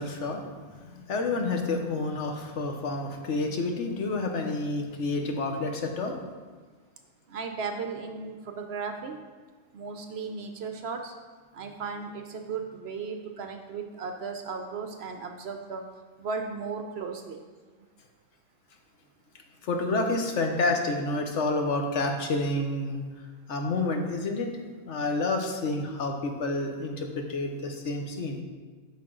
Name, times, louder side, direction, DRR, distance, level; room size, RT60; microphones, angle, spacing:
voice 1, 0.0-6.2 19.6-23.0 23.5-24.5 24.9-28.4, left 2 dB, 65° left, 3 dB, 1.1 m, -29 dB
voice 2, 7.3-9.2 9.7-11.1 11.5-15.8 16.2-17.4, right 5 dB, 60° right, 5 dB, 0.8 m, -36 dB
8.6 x 5.7 x 3.8 m, 1.4 s
omnidirectional pair, 1.3 m